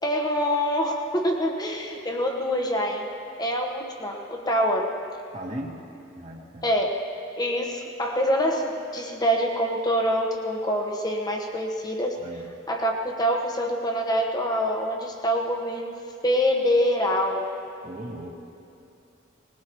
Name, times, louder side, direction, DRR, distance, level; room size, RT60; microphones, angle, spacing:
voice 1, 0.0-3.1 3.4-4.9 6.6-6.9 7.4-12.2 12.7-15.9 16.2-17.5, equal, 20° left, 1 dB, 1.4 m, -25 dB
voice 2, 5.3-5.9 6.1-6.7 12.2-12.5 17.8-18.4, right 1 dB, 35° right, -1 dB, 1.7 m, -37 dB
20.0 x 20.0 x 3.2 m, 2.7 s
head